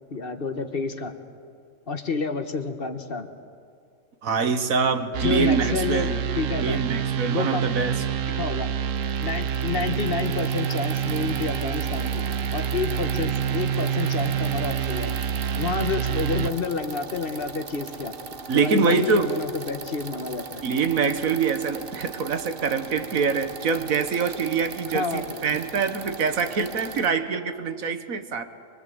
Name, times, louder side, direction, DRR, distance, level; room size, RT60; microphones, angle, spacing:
voice 1, 0.1-1.1 1.9-3.3 5.2-6.8 7.3-7.6 8.3-8.7 9.2-12.2 12.5-15.2 15.6-18.1 18.5-20.6 24.9-25.4, left 5 dB, 45° left, 7 dB, 1.4 m, -29 dB
voice 2, 4.2-6.2 6.6-8.0 18.5-19.3 20.6-28.4, right 5 dB, 90° right, 9 dB, 1.7 m, -24 dB
sound 1, 5.1-16.5, right 8 dB, 70° right, 1.1 m, -27 dB
sound 2, 8.9-27.1, right 5 dB, 45° right, 1.2 m, -40 dB
23.5 x 23.0 x 7.9 m, 2.2 s
omnidirectional pair, 1.4 m